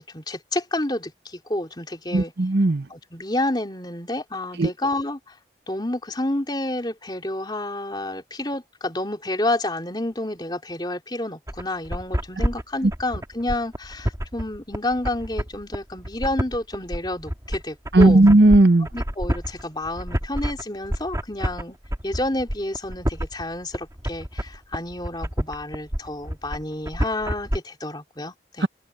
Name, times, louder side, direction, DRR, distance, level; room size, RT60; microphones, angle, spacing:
voice 1, 0.0-2.3 2.9-5.4 5.7-18.2 18.9-21.8 22.0-28.7, left 1 dB, 25° left, 3.7 m, -29 dB
voice 2, 2.1-2.8 4.6-4.7 17.9-18.9, right 2 dB, 65° right, 0.9 m, -15 dB
sound 1, 11.5-27.6, equal, 20° right, 2.2 m, -28 dB
open air
head